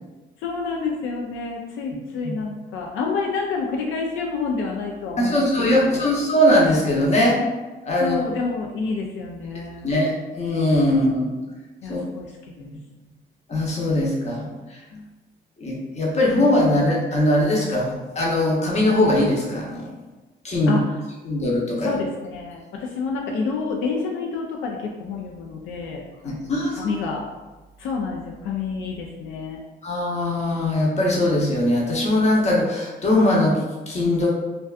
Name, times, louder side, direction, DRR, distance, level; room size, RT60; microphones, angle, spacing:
voice 1, 0.4-6.1 8.0-9.9 11.8-12.3 12.6-12.7 14.9-15.0 20.7-20.8 21.8-27.2 27.8-29.6, left 4 dB, 85° left, 0 dB, 0.4 m, -29 dB
voice 2, 5.2-7.4 7.9-8.2 9.8-11.3 11.9-12.0 13.5-14.5 15.6-19.9 20.4-20.8 21.2-21.9 26.2-27.0 29.8-34.3, left 1 dB, 35° left, -3 dB, 0.8 m, -20 dB
2.5 x 2.2 x 2.4 m, 1.2 s
cardioid pair, 90°, 20 cm